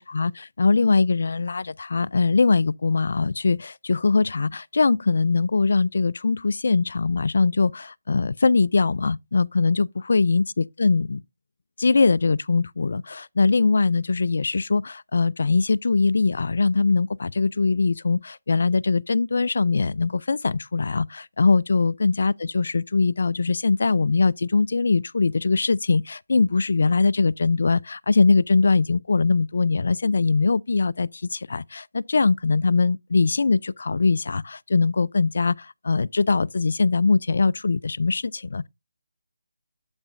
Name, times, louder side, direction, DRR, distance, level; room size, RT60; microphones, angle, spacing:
voice 1, 0.0-11.2 11.8-38.7, left 4 dB, 60° left, 0.3 m, -22 dB
8.6 x 8.1 x 2.5 m
figure-of-eight pair, 165°, 0 cm